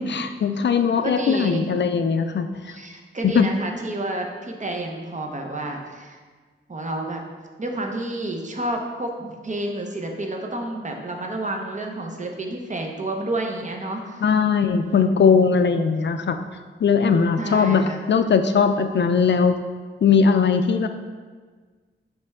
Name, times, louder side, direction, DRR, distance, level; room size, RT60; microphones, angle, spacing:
voice 1, 0.0-2.8 3.2-3.5 14.2-16.4 16.8-19.6 20.0-20.9, left 6 dB, 55° left, 8 dB, 0.4 m, -19 dB
voice 2, 1.0-1.8 2.7-6.2 6.7-7.2 7.6-14.2 14.8-15.2 17.4-18.0, right 1 dB, 35° right, 2 dB, 0.8 m, -30 dB
5.8 x 5.4 x 3.5 m, 1.5 s
wide cardioid pair, 110°, 21 cm